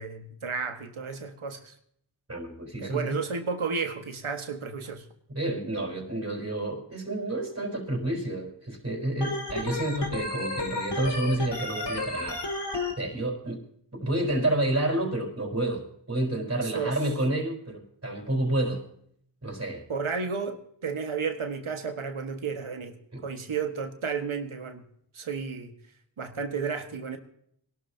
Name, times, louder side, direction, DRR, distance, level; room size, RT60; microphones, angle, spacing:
voice 1, 0.0-1.7 2.8-5.1 16.6-17.0 19.9-24.8 25.1-25.7 26.2-27.2, right 5 dB, 85° right, 6 dB, 1.6 m, -32 dB
voice 2, 2.3-3.2 5.3-12.4 13.0-13.6 13.9-18.9 19.4-19.8 23.1-23.2, right 1 dB, 30° right, 0 dB, 4.3 m, -29 dB
Organ, 9.2-12.9, left 2 dB, 60° left, 2.7 m, -32 dB
22.0 x 12.5 x 2.8 m, 0.68 s
cardioid pair, 40°, 48 cm